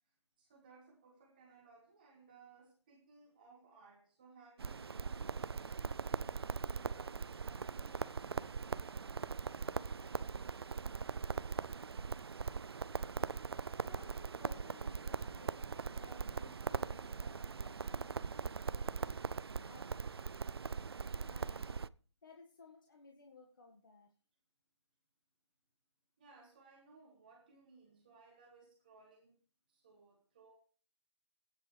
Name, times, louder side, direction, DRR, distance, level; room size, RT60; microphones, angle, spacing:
voice 1, 0.1-8.8 26.2-29.4 29.7-30.5, right 4 dB, 20° right, 0 dB, 1.7 m, -62 dB
Crackle, 4.6-21.9, right 5 dB, 60° right, 0.5 m, -40 dB
voice 2, 13.8-19.0 19.6-19.9 21.3-21.8 22.2-24.1, left 3 dB, 50° left, 1 dB, 1.7 m, -59 dB
18.5 x 9.4 x 3.3 m, 0.42 s
hypercardioid pair, 175°, 14 cm